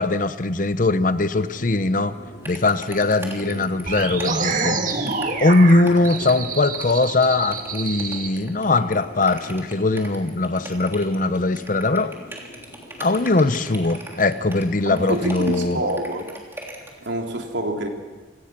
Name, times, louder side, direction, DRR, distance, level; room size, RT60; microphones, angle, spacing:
voice 1, 0.0-2.2 2.4-4.8 5.4-12.1 13.0-15.8, left 2 dB, 45° left, 12 dB, 0.8 m, -20 dB
sound 1, 1.4-15.5, left 1 dB, 65° left, 2.7 m, -43 dB
sound 2, 2.4-17.1, right 1 dB, 15° right, 3.1 m, -40 dB
sound 3, 3.9-8.3, right 4 dB, 45° right, 1.8 m, -27 dB
voice 2, 14.8-16.3 17.0-17.9, right 1 dB, 75° right, 2 dB, 3.2 m, -27 dB
27.5 x 17.5 x 6.0 m, 1.3 s
head